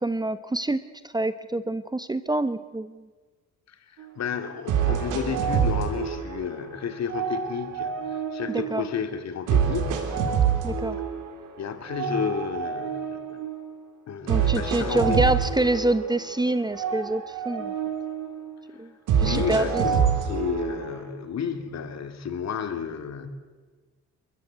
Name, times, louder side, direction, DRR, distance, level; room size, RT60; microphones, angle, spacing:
voice 1, 0.0-3.0 8.5-8.8 10.6-11.0 14.3-17.7 18.8-18.9 19.2-19.8, right 2 dB, 15° right, 13 dB, 0.9 m, -26 dB
voice 2, 3.7-10.0 11.6-13.4 14.1-15.4 19.2-23.3, left 7 dB, 60° left, 8 dB, 2.6 m, -32 dB
sound 1, 4.0-4.1 4.7-6.7 7.1-8.9 9.5-11.5 11.9-13.7 14.3-16.4 16.7-18.5 19.1-21.1, right 7 dB, 85° right, 3.6 m, -27 dB
29.0 x 14.5 x 8.2 m, 1.4 s
cardioid pair, 90°, 30 cm